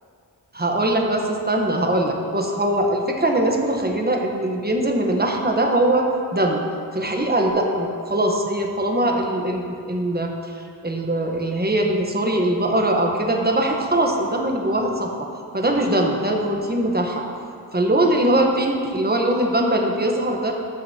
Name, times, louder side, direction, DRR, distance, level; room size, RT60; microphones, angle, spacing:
voice 1, 0.5-6.1 6.3-6.6 6.9-10.3 10.6-15.3 15.5-17.2 17.7-20.5, right 1 dB, 20° right, 1 dB, 1.0 m, -21 dB
12.5 x 6.3 x 2.8 m, 2.3 s
wide cardioid pair, 60°, 43 cm